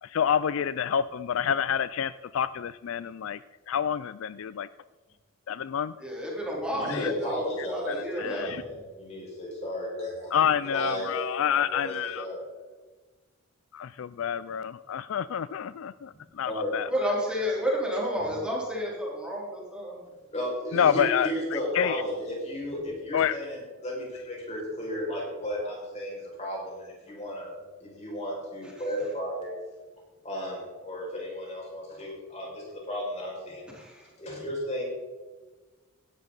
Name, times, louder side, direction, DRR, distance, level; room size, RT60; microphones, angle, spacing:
voice 1, 0.0-3.4 3.7-4.7 5.5-5.9 6.9-7.1 7.9-8.6 10.3-12.3 13.7-17.1 20.7-22.0 23.1-23.4, left 8 dB, 65° left, 16 dB, 0.3 m, -28 dB
voice 2, 6.0-7.4 7.7-8.6 16.9-20.0 33.8-34.0, equal, 5° right, -5 dB, 3.6 m, -31 dB
voice 3, 6.7-10.4 10.6-12.4 16.5-16.7 20.3-27.5 27.8-29.5 30.2-33.7 34.2-34.8, equal, 30° left, -3 dB, 5.6 m, -34 dB
17.0 x 12.0 x 4.0 m, 1.3 s
head